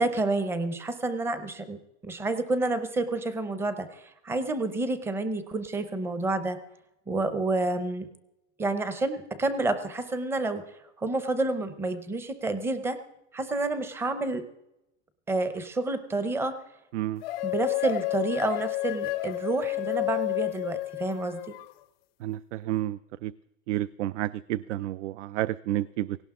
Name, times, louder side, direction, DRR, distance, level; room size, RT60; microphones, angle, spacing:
voice 1, 0.0-6.6 7.1-8.1 8.6-10.6 11.0-13.0 13.3-14.4 15.3-16.5 17.4-21.6, right 2 dB, 5° right, 11 dB, 0.6 m, -29 dB
sound 1, 17.2-21.7, left 19 dB, 50° left, 0.5 m, -30 dB
voice 2, 22.2-23.3 23.7-26.2, right 15 dB, 70° right, 17 dB, 0.5 m, -30 dB
17.5 x 17.0 x 3.7 m, 0.88 s
supercardioid pair, 160°, 38 cm